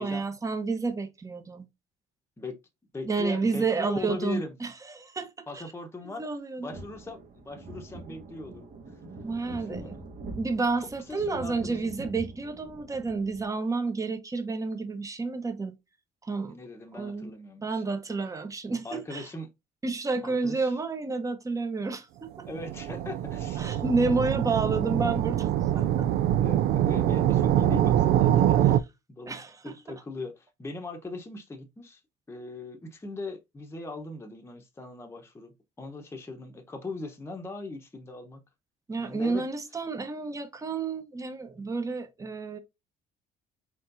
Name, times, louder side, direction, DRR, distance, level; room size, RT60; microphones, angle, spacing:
voice 1, 0.0-1.7 3.0-5.3 5.5-5.6 6.2-6.7 9.2-9.9 10.4-15.7 16.2-16.6 16.9-17.3 17.6-19.3 19.8-22.5 23.6-25.9 29.3-29.8 38.9-42.6, right 4 dB, 20° right, 0.9 m, -30 dB
voice 2, 2.9-4.5 5.5-6.2 6.6-8.7 9.5-10.0 11.1-11.9 16.5-17.8 18.8-19.5 20.2-20.8 22.5-23.8 25.7-25.9 26.4-28.8 29.1-29.3 29.6-32.0 32.3-38.4 39.0-39.4, left 2 dB, 15° left, 0.9 m, -40 dB
sound 1, 6.7-13.4, right 2 dB, 55° right, 1.6 m, -44 dB
sound 2, 22.4-28.8, right 11 dB, 75° right, 0.4 m, -24 dB
4.4 x 4.3 x 2.6 m
cardioid pair, 110°, 17 cm